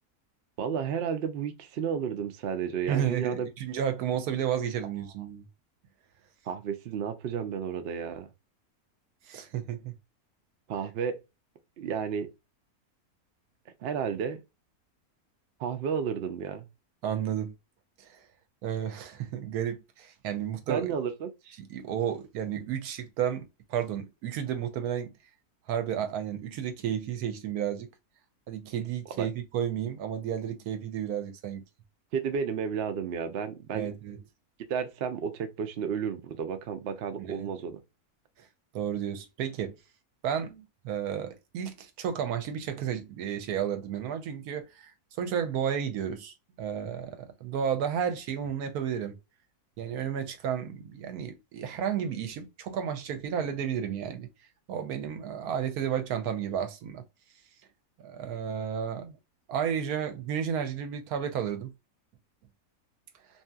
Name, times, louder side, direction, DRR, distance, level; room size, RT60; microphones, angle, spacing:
voice 1, 0.6-3.5 6.5-8.3 10.7-11.2 11.8-12.3 13.8-14.4 15.6-16.7 20.7-21.3 29.2-29.3 32.1-33.9 34.7-37.8, right 7 dB, 70° right, 0.6 m, -32 dB
voice 2, 2.9-5.5 9.3-9.9 17.0-17.5 18.0-18.2 18.6-20.9 21.6-25.1 25.7-27.9 28.5-31.6 33.7-34.2 37.2-37.5 38.4-38.5 38.7-39.7 40.2-44.9 45.2-49.2 49.8-54.3 54.7-57.0 58.0-59.2 59.5-61.7, right 8 dB, 85° right, 1.1 m, -32 dB
2.7 x 2.7 x 2.2 m
omnidirectional pair, 1.6 m